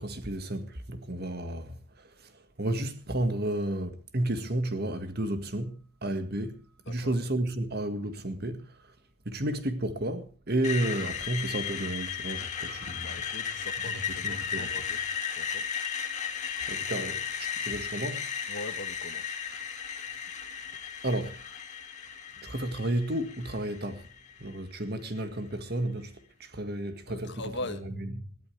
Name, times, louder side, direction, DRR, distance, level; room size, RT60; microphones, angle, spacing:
voice 1, 0.0-8.9 9.3-13.5 13.9-14.7 16.7-18.3 21.0-21.4 22.4-24.1 24.4-28.3, right 1 dB, 45° right, 1.9 m, -32 dB
voice 2, 6.9-7.2 13.0-15.0 15.3-15.6 18.5-19.4 27.1-27.8, left 2 dB, 50° left, 1.6 m, -41 dB
Screech, 10.6-24.6, left 7 dB, 35° left, 2.2 m, -35 dB
21.0 x 14.0 x 3.4 m
head